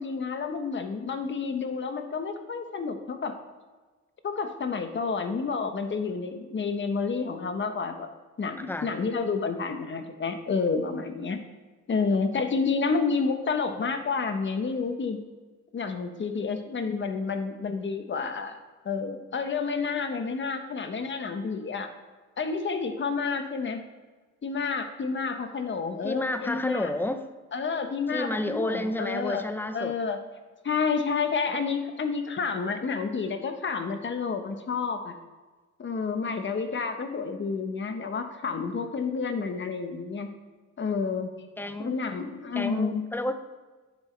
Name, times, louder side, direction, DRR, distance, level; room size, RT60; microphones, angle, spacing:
voice 1, 0.0-3.3 4.2-8.1 8.4-11.4 11.9-15.2 15.7-18.6 18.8-21.9 22.4-23.8 24.4-26.9 27.5-29.4 29.7-30.2 30.6-35.1 35.8-40.3 40.8-41.3 41.8-43.0, left 5 dB, 40° left, 7 dB, 1.1 m, -29 dB
voice 2, 8.6-8.9 26.0-27.2 28.1-29.9 41.6-42.0 42.5-43.4, left 1 dB, 5° left, 10 dB, 0.6 m, -30 dB
9.7 x 7.5 x 3.3 m, 1.3 s
cardioid pair, 90°, 30 cm